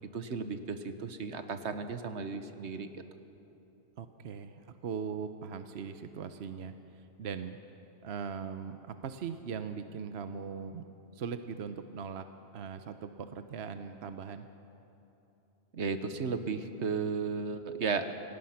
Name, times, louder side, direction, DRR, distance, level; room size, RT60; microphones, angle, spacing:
voice 1, 0.1-3.0 15.7-18.1, right 5 dB, 85° right, 9 dB, 1.4 m, -34 dB
voice 2, 4.0-7.6 8.0-10.8 11.1-12.2 12.5-14.5, right 6 dB, 70° right, 9 dB, 1.1 m, -40 dB
26.5 x 18.0 x 5.8 m, 2.9 s
omnidirectional pair, 1.1 m